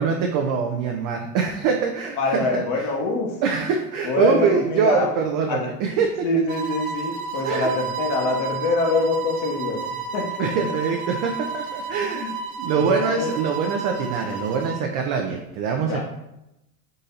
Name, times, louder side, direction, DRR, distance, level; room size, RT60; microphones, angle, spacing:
voice 1, 0.0-2.9 3.4-6.1 7.4-7.7 10.4-16.0, right 5 dB, 45° right, 3 dB, 0.6 m, -24 dB
voice 2, 2.2-3.4 4.0-5.1 5.5-5.7 6.2-10.5 12.1-12.4 12.8-13.3 15.9-16.0, left 2 dB, 40° left, 0 dB, 1.0 m, -24 dB
sound 1, 6.5-14.9, right 4 dB, 60° right, 0.9 m, -32 dB
3.9 x 2.7 x 3.9 m, 0.88 s
hypercardioid pair, 105°, 46 cm